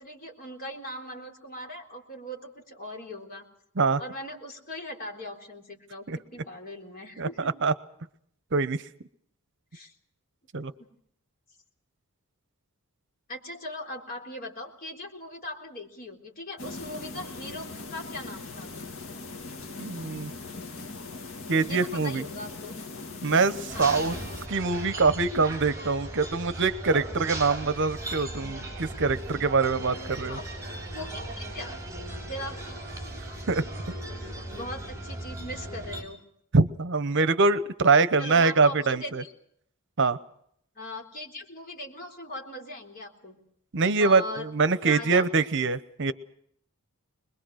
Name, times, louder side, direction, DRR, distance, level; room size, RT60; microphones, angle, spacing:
voice 1, 0.0-3.5 4.0-7.5 9.7-9.9 10.8-10.9 13.3-18.7 21.6-22.8 23.7-23.9 30.3-30.5 30.9-31.8 32.3-32.6 34.2-36.2 38.2-39.3 40.8-43.4 44.0-44.5 44.8-45.3, left 1 dB, 40° left, 1 dB, 3.8 m, -39 dB
voice 2, 7.2-7.7 8.5-8.8 10.5-10.7 19.8-20.3 21.5-22.2 23.2-24.1 24.5-30.4 33.5-33.6 36.5-39.2 40.0-40.2 43.7-46.1, right 4 dB, 55° right, 14 dB, 0.9 m, -24 dB
sound 1, 16.6-24.5, left 3 dB, 65° left, 1.7 m, -40 dB
sound 2, 23.7-36.0, right 1 dB, 15° right, 6.0 m, -37 dB
25.0 x 21.5 x 6.4 m, 0.68 s
head